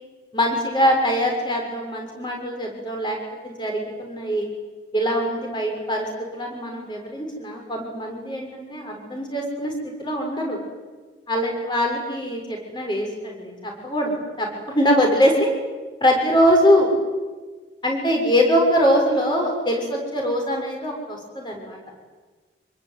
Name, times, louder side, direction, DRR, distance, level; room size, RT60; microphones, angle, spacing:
voice 1, 0.3-3.2 3.4-4.5 4.9-6.1 6.3-10.6 11.3-15.5 16.0-16.9 17.8-21.8, equal, 25° left, 1 dB, 6.5 m, -22 dB
26.5 x 23.0 x 9.4 m, 1.4 s
head